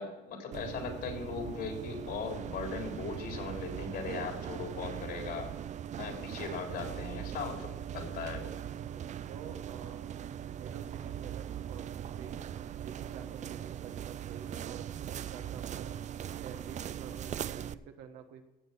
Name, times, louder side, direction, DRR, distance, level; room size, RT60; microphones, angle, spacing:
voice 1, 0.0-5.5 6.0-8.4, left 5 dB, 70° left, 2 dB, 3.7 m, -39 dB
sound 1, 0.5-17.7, right 10 dB, 45° right, 0.5 m, -40 dB
voice 2, 8.7-12.4 12.8-16.1 16.4-18.4, right 8 dB, 90° right, 7 dB, 1.4 m, -49 dB
15.5 x 7.9 x 5.8 m, 1.1 s
cardioid pair, 110°, 17 cm